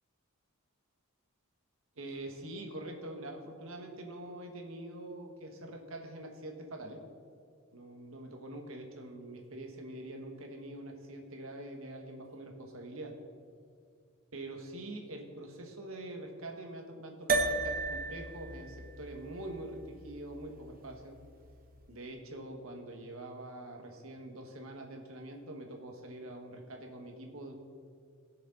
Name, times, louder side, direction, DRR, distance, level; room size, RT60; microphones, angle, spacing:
voice 1, 2.0-7.0 7.7-13.1 14.3-21.1 21.9-27.5, right 1 dB, 75° right, 2 dB, 1.6 m, -44 dB
sound 1, 17.3-21.9, right 3 dB, 45° right, 0.9 m, -36 dB
20.0 x 6.7 x 3.9 m, 2.2 s
head